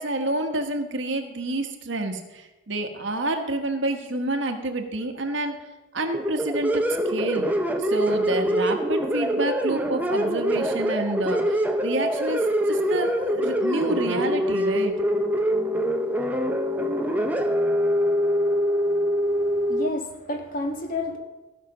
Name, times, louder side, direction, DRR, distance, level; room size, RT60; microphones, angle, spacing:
voice 1, 0.0-5.6 5.9-7.5 7.8-15.0, right 2 dB, 60° right, 5 dB, 1.2 m, -28 dB
sound 1, 6.1-19.9, equal, 10° right, 0.6 m, -24 dB
voice 2, 19.2-21.2, left 2 dB, 40° left, 3 dB, 1.5 m, -31 dB
15.5 x 5.9 x 6.1 m, 1.1 s
head